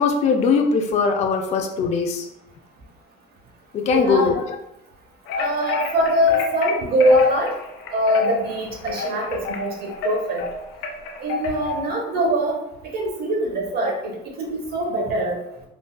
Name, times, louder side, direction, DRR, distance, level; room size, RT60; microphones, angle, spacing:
voice 1, 0.0-2.3 3.7-4.4, left 5 dB, 35° left, 3 dB, 0.4 m, -20 dB
voice 2, 3.9-4.3 5.4-7.5 7.9-10.4 11.2-12.6 12.9-15.4, equal, 50° right, 0 dB, 0.9 m, -22 dB
sound 1, 5.3-11.9, left 3 dB, 80° left, 0.6 m, -29 dB
3.8 x 2.3 x 2.2 m, 0.84 s
cardioid pair, 135°, 20 cm